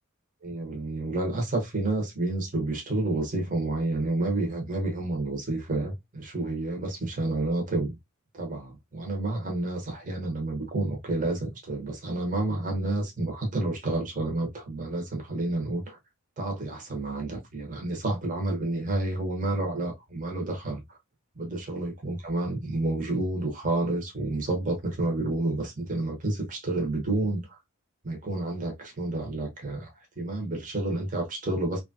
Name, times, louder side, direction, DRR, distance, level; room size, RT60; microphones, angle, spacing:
voice 1, 0.4-8.0 8.3-16.0 16.4-21.0 21.4-27.6 28.0-29.9 30.2-31.8, right 2 dB, 35° right, 0.9 m, -30 dB
2.9 x 2.3 x 2.6 m
head